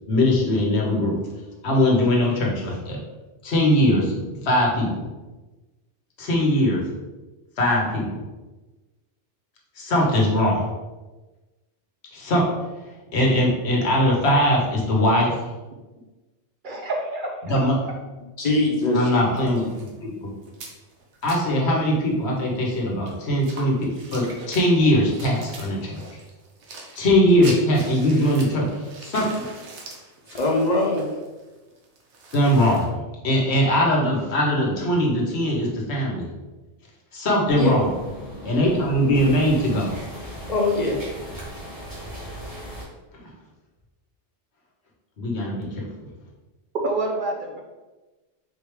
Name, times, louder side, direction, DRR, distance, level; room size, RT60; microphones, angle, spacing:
voice 1, 0.1-1.2 1.6-3.0 3.4-5.0 6.2-6.9 7.6-8.2 9.7-10.6 12.1-15.4 17.4-17.9 18.9-20.3 21.2-26.0 26.9-29.6 32.3-32.9 33.2-36.3 37.1-37.9 38.4-39.9 43.1-43.3 45.2-45.9, equal, 70° left, -2 dB, 1.2 m, -21 dB
voice 2, 16.6-17.4 46.8-47.6, right 2 dB, 60° right, 1 dB, 0.6 m, -27 dB
voice 3, 18.4-19.0 30.3-31.1 37.5-37.7 40.5-41.0, left 2 dB, 45° left, 0 dB, 0.6 m, -21 dB
sound 1, 18.8-21.5 22.1-22.2 22.4-32.9, right 3 dB, 80° right, 1.1 m, -42 dB
sound 2, 37.5-42.9, equal, 20° right, 1.2 m, -37 dB
4.3 x 3.3 x 3.1 m, 1.2 s
omnidirectional pair, 1.2 m